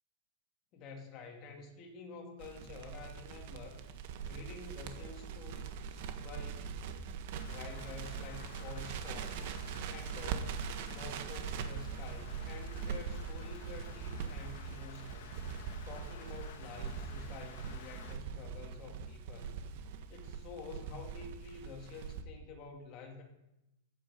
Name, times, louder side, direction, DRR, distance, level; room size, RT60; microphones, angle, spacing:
voice 1, 0.7-3.8 4.2-6.7 7.5-9.5 9.9-15.3 15.9-19.6 20.1-23.2, left 4 dB, 30° left, 1 dB, 2.5 m, -49 dB
Crackle, 2.4-22.2, right 6 dB, 50° right, 1.3 m, -42 dB
Rain, 7.4-18.2, left 9 dB, 55° left, 1.3 m, -54 dB
14.0 x 8.9 x 5.1 m, 0.92 s
supercardioid pair, 155°, 0 cm